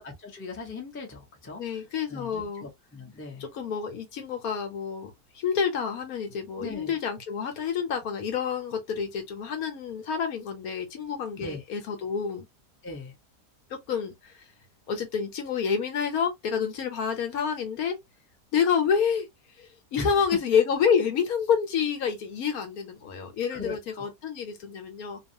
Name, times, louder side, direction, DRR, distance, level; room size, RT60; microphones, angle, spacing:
voice 1, 0.0-1.8 2.1-3.5 6.6-7.0 11.4-11.6 12.8-13.1 20.0-20.1 23.5-24.1, left 3 dB, 15° left, 0.5 m, -39 dB
voice 2, 1.6-2.6 3.4-12.4 13.7-14.5 14.9-18.0 18.5-19.3 19.6-25.2, left 7 dB, 65° left, 1.1 m, -28 dB
2.6 x 2.4 x 2.7 m
omnidirectional pair, 1.8 m